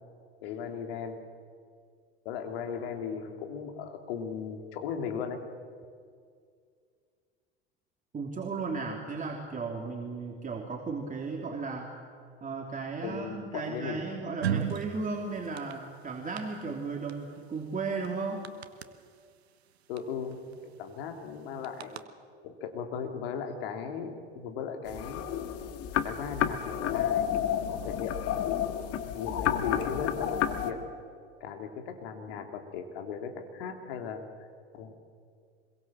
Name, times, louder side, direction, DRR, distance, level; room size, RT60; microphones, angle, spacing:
voice 1, 0.4-1.2 2.2-5.4 13.0-14.1 19.9-22.0 22.4-25.3 26.0-27.2 27.6-28.3 29.0-30.8 31.4-34.3 34.7-34.9, left 6 dB, 65° left, 5 dB, 3.1 m, -37 dB
voice 2, 8.1-11.9 12.4-18.4, right 4 dB, 25° right, 0 dB, 3.3 m, -35 dB
sound 1, 14.4-14.9 15.4-15.7 16.4-16.5 17.1-17.2 17.4-17.5 18.0-18.1 18.4-18.8 20.0-20.1 20.3-20.5 21.6-22.0, right 9 dB, 80° right, 1.3 m, -31 dB
sound 2, 24.9-30.7, left 10 dB, 50° left, 1.9 m, -30 dB
26.0 x 22.5 x 7.5 m, 2.2 s
hypercardioid pair, 75°, 31 cm